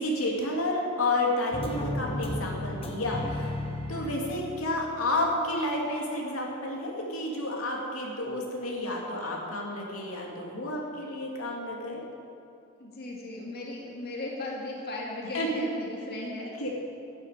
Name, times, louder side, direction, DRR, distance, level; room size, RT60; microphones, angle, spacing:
voice 1, 0.0-3.5 3.9-12.0 15.3-15.6 16.6-16.7, left 1 dB, 85° left, -1 dB, 2.5 m, -30 dB
sound 1, 1.5-5.1, left 1 dB, 25° left, 1.3 m, -34 dB
voice 2, 12.8-16.5, left 2 dB, 50° left, -2 dB, 2.0 m, -37 dB
12.5 x 8.3 x 9.3 m, 2.6 s
head